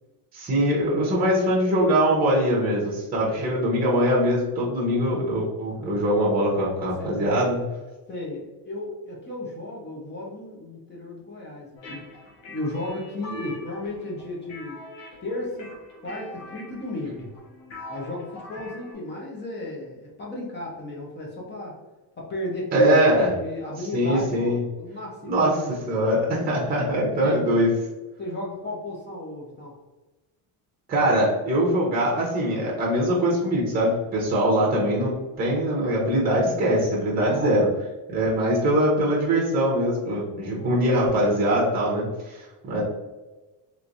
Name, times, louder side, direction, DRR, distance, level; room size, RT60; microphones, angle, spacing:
voice 1, 0.3-7.7 22.7-23.3 23.9-24.6 25.2-27.7 30.9-37.7 38.1-42.8, equal, 20° right, -4 dB, 0.8 m, -22 dB
voice 2, 8.1-12.1 12.5-14.8 15.2-15.7 16.0-17.3 17.9-21.8 22.2-25.8 27.2-27.4 28.2-29.7 37.3-37.5 40.4-40.8, left 1 dB, 25° left, -4 dB, 0.7 m, -34 dB
sound 1, 11.8-18.9, left 1 dB, 75° left, 1.2 m, -43 dB
3.1 x 3.1 x 2.5 m, 1.1 s
cardioid pair, 145°, 44 cm